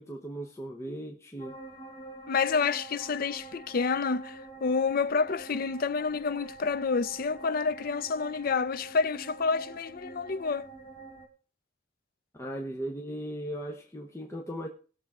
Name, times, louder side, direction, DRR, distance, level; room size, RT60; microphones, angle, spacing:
voice 1, 0.0-1.6 12.3-14.7, right 1 dB, 15° left, 0.8 m, -37 dB
sound 1, 1.4-11.3, right 2 dB, 30° left, 1.7 m, -46 dB
voice 2, 2.3-10.7, left 5 dB, 50° left, 0.5 m, -29 dB
19.0 x 6.8 x 3.6 m
head